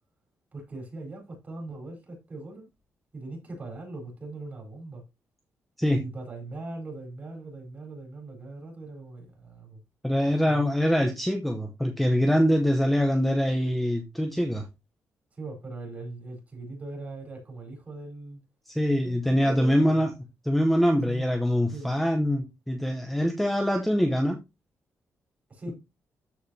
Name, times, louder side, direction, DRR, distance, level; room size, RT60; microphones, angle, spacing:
voice 1, 0.5-2.7 3.1-5.0 5.9-9.8 10.5-10.7 15.3-18.4 19.0-20.0 20.9-21.2 21.7-21.9 25.5-25.7, right 2 dB, 25° right, 4.3 m, -40 dB
voice 2, 10.0-14.6 18.7-20.1 20.4-24.4, equal, ahead, 0.8 m, -24 dB
13.5 x 4.9 x 2.8 m
wide cardioid pair, 180°, 5 cm